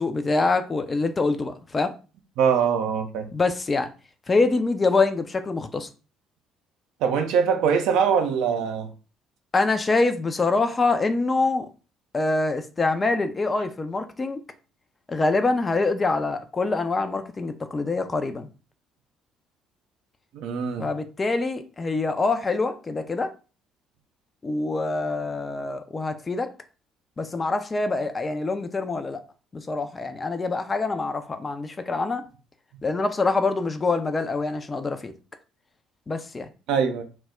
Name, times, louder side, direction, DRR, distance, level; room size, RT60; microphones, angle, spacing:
voice 1, 0.0-1.9 3.3-3.9 4.3-5.9 9.5-11.7 12.1-14.4 15.1-18.5 20.8-23.3 24.4-26.5 27.2-29.2 29.5-32.2 32.8-35.1 36.1-36.5, left 3 dB, 25° left, 0.3 m, -25 dB
voice 2, 2.4-3.3 7.0-8.9 20.3-20.9 36.7-37.0, right 7 dB, 60° right, 0.4 m, -22 dB
2.1 x 2.0 x 3.5 m
figure-of-eight pair, 50°, 0 cm